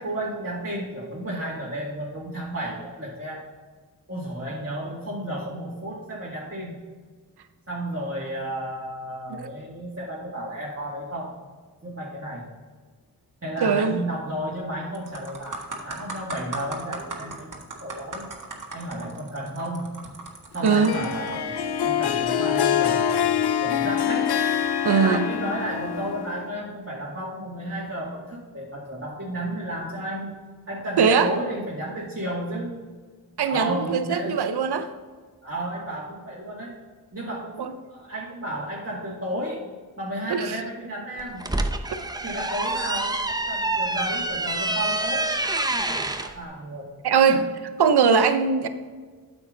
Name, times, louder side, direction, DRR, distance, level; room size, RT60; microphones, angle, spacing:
voice 1, 0.0-3.4 4.1-6.8 7.7-11.4 11.8-12.5 13.4-17.5 17.8-18.3 18.7-19.9 20.5-21.6 21.8-24.4 24.9-30.3 30.7-32.8 33.4-34.4 35.4-36.7 37.1-39.7 40.0-41.5 42.2-46.9 47.3-47.5, right 1 dB, 35° right, -7 dB, 2.1 m, -32 dB
voice 2, 13.6-14.0 20.6-20.9 24.8-25.2 31.0-31.3 33.4-34.9 37.6-37.7 40.3-40.6 47.0-47.5 47.8-48.7, right 6 dB, 85° right, 10 dB, 0.7 m, -20 dB
sound 1, 14.3-14.6 14.9-21.3 22.0-22.2, right 2 dB, 55° right, 1.7 m, -37 dB
Harp, 20.7-26.5, left 9 dB, 90° left, 0.5 m, -25 dB
sound 2, 41.2-46.3, right 2 dB, 10° right, 0.7 m, -27 dB
8.7 x 7.2 x 3.9 m, 1.5 s
cardioid pair, 50°, 38 cm